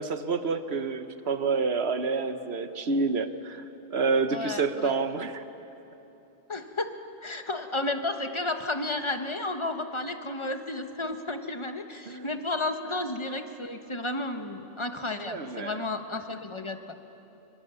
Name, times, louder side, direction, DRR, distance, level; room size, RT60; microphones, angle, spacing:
voice 1, 0.0-3.6 3.9-5.4 12.1-12.3 15.2-15.8, right 4 dB, 55° right, 10 dB, 1.2 m, -28 dB
voice 2, 4.3-4.9 6.5-6.9 7.2-16.8, left 2 dB, 25° left, 6 dB, 1.2 m, -32 dB
26.0 x 23.0 x 6.9 m, 3.0 s
omnidirectional pair, 1.3 m